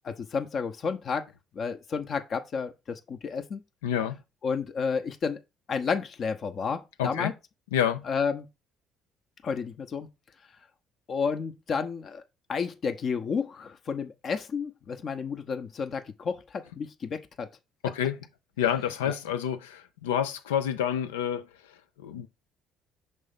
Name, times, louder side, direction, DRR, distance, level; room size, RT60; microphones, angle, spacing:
voice 1, 0.0-1.3 1.5-3.6 4.4-5.4 5.7-7.3 8.1-8.5 9.4-10.1 11.1-12.2 12.5-17.5, left 5 dB, 45° left, 0.9 m, -31 dB
voice 2, 3.8-4.2 7.0-7.3 7.7-8.0 17.8-18.2 18.6-22.3, left 9 dB, 80° left, 0.5 m, -28 dB
5.7 x 3.6 x 5.2 m
figure-of-eight pair, 50°, 0 cm